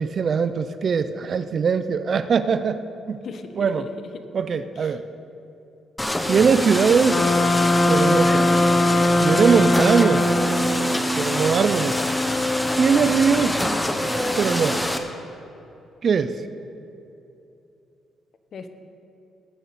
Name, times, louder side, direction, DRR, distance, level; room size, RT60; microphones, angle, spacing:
voice 1, 0.0-2.8 3.1-3.2 3.6-3.9 4.3-5.0 6.3-7.2 7.9-8.5 9.2-10.3 11.2-12.0 12.8-13.6 14.4-15.0 16.0-16.4, right 6 dB, 50° right, 12 dB, 0.5 m, -21 dB
voice 2, 3.2-4.2 4.7-4.9 18.5-18.7, left 5 dB, 60° left, 8 dB, 1.0 m, -38 dB
sound 1, 6.0-15.0, left 1 dB, 10° left, 1.0 m, -24 dB
sound 2, 7.1-11.0, left 1 dB, 40° left, 1.2 m, -20 dB
18.5 x 8.4 x 4.2 m, 2.8 s
cardioid pair, 90°, 0 cm